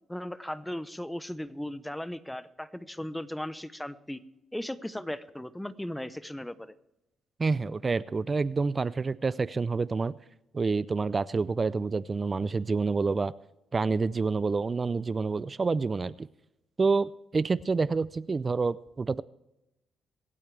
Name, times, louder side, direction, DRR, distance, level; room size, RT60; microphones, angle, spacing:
voice 1, 0.1-4.2 4.5-6.7, left 1 dB, 5° left, 14 dB, 0.8 m, -37 dB
voice 2, 7.4-10.2 10.5-13.3 13.7-16.3 16.8-19.2, right 4 dB, 30° right, 18 dB, 0.4 m, -28 dB
25.5 x 8.6 x 3.3 m, 0.91 s
cardioid pair, 90°, 0 cm